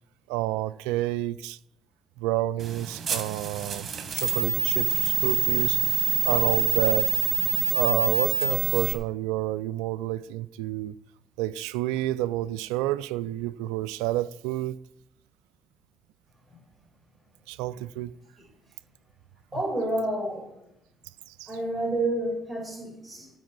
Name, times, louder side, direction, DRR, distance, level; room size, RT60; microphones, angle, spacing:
voice 1, 0.3-1.6 2.2-3.9 4.1-5.8 6.2-7.1 7.7-11.0 11.4-14.8 17.5-18.1 21.3-21.5, right 15 dB, 80° right, 0.3 m, -29 dB
sound 1, 2.6-8.9, right 7 dB, 50° right, 1.5 m, -26 dB
voice 2, 19.5-20.5 21.5-23.3, right 1 dB, 10° right, 5.4 m, -29 dB
15.5 x 5.4 x 5.9 m
hypercardioid pair, 50°, 0 cm